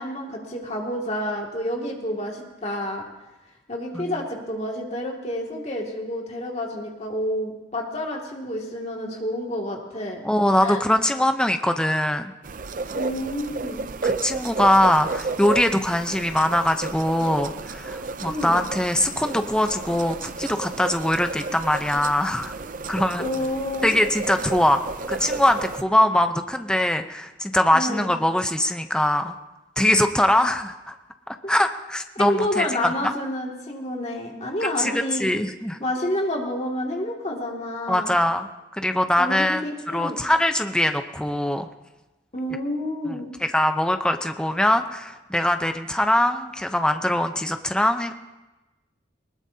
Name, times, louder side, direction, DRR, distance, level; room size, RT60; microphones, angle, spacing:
voice 1, 0.0-3.0 3.7-10.2 10.6-10.8 12.9-13.8 18.2-18.6 23.2-24.0 27.7-28.1 32.2-35.3 35.8-38.2 39.2-40.2 42.3-43.3, left 1 dB, 35° left, 0 dB, 2.3 m, -29 dB
voice 2, 10.2-12.3 14.0-22.6 22.9-23.2 23.8-24.8 25.1-29.4 29.8-30.9 31.3-32.9 34.8-35.8 37.9-39.6 39.9-41.7 43.1-43.2 43.5-48.1, left 1 dB, 5° left, 7 dB, 0.7 m, -22 dB
sound 1, 12.4-25.8, right 3 dB, 45° right, 0.6 m, -32 dB
20.0 x 20.0 x 2.8 m, 1.1 s
head